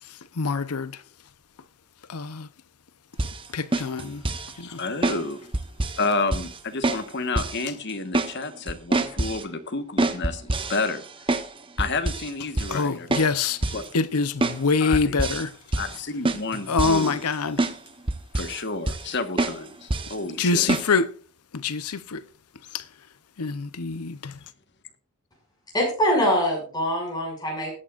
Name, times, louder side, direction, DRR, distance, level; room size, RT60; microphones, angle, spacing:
voice 1, 0.1-1.0 2.1-2.5 3.5-4.2 4.6-4.8 12.7-15.5 16.7-17.6 20.4-21.1 21.5-22.2 22.7-22.8 23.4-24.4, left 4 dB, 90° left, 0.8 m, -25 dB
sound 1, 3.2-3.4 3.7-4.5 5.0-5.2 5.5-6.1 6.3-6.6 6.8-7.1 7.4-7.6 7.9-8.3 8.7-9.4 10.0-11.5 11.8-12.3 12.6-12.8 13.1-13.3 13.6-13.9 14.4-14.6 14.9-15.4 15.7-16.0 16.3-17.3 17.6-17.8 18.1-18.6 18.9-19.1 19.4-19.6 19.9-20.1 20.7-20.9, right 2 dB, 25° right, 0.9 m, -26 dB
voice 2, 4.6-5.4 6.0-11.0 11.8-13.1 13.7-13.8 14.8-15.2 15.8-17.2 18.3-20.7, left 3 dB, 50° left, 1.4 m, -30 dB
voice 3, 25.7-27.7, equal, 20° left, 6.2 m, -23 dB
20.0 x 8.8 x 2.5 m
head